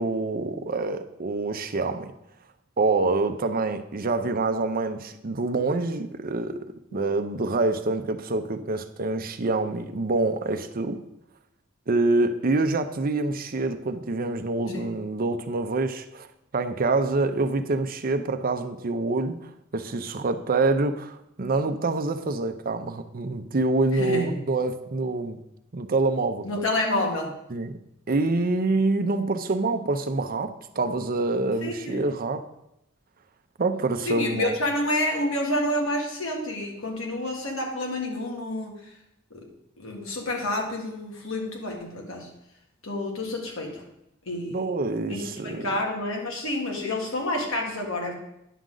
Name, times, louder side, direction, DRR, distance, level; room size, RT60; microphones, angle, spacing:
voice 1, 0.0-2.1 2.8-6.7 6.9-11.0 11.9-16.3 16.5-25.4 25.7-26.5 27.5-27.8 28.1-32.4 33.6-34.5 44.5-45.7, right 3 dB, 45° right, 8 dB, 0.6 m, -26 dB
voice 2, 23.9-24.4 26.4-27.3 31.6-32.1 34.1-38.9 39.3-39.5 39.8-42.3 42.8-43.8 44.3-44.7 45.1-48.1, left 1 dB, 75° left, 1 dB, 1.8 m, -29 dB
10.0 x 6.2 x 3.9 m, 0.82 s
head